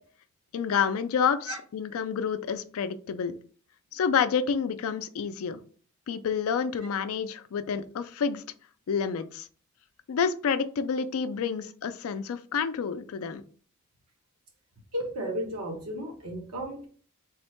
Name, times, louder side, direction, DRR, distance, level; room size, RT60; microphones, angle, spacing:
voice 1, 0.5-3.3 3.9-5.6 6.1-8.4 8.9-9.5 10.1-13.4, left 6 dB, 75° left, 11 dB, 0.4 m, -29 dB
voice 2, 14.9-16.9, equal, 85° right, 1 dB, 1.1 m, -34 dB
3.5 x 2.1 x 4.3 m, 0.43 s
head